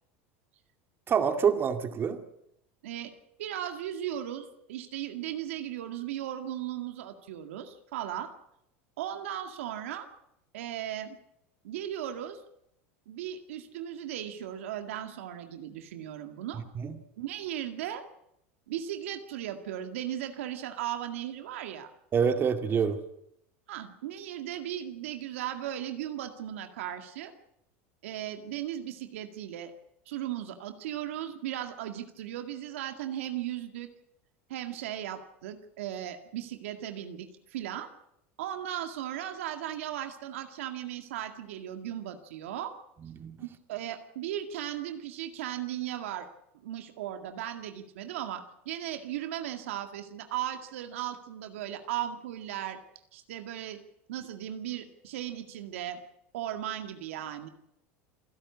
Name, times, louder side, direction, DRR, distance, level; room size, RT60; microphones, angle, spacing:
voice 1, 1.1-2.2 16.8-16.9 22.1-23.0 43.2-43.4, right 7 dB, 35° right, 7 dB, 2.2 m, -26 dB
voice 2, 3.4-8.3 9.0-10.1 10.5-11.2 11.6-12.4 13.1-16.6 17.2-18.0 18.7-21.9 23.7-27.3 28.0-29.7 30.1-33.9 34.5-37.9 38.4-42.7 43.4-46.3 46.5-52.8 53.1-53.8 54.1-56.0 56.3-57.5, right 11 dB, 80° right, 7 dB, 2.0 m, -37 dB
27.5 x 11.5 x 8.4 m, 0.78 s
supercardioid pair, 105°, 7 cm